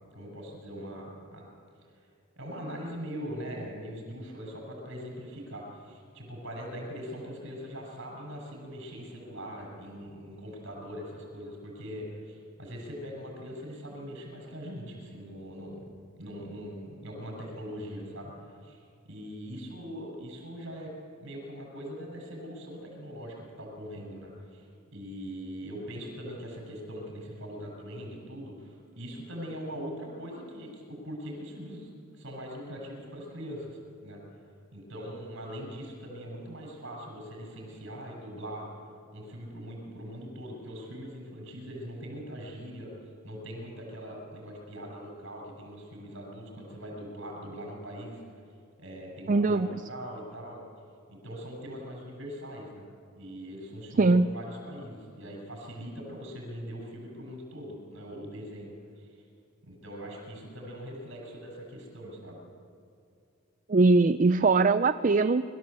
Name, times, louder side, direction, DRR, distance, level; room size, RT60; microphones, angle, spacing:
voice 1, 0.1-1.5 2.4-15.9 16.2-20.9 21.2-24.7 24.9-34.2 34.7-38.7 39.1-42.9 43.2-48.2 48.8-50.6 51.1-52.9 53.2-58.7 59.0-59.1 59.6-62.4, equal, 60° right, 0 dB, 6.7 m, -41 dB
voice 2, 49.3-49.7 54.0-54.3 63.7-65.4, right 3 dB, 40° right, 10 dB, 0.4 m, -21 dB
24.5 x 13.5 x 8.3 m, 2.4 s
head